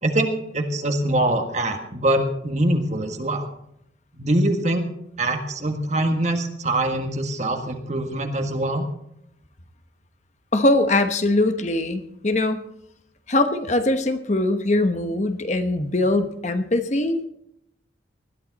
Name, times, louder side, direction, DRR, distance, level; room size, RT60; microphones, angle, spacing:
voice 1, 0.0-3.5 4.1-4.8 5.2-8.9, right 1 dB, 40° right, 5 dB, 1.6 m, -23 dB
voice 2, 10.5-12.6 13.3-17.2, left 2 dB, 40° left, 8 dB, 1.0 m, -22 dB
20.0 x 12.5 x 4.1 m, 0.76 s
head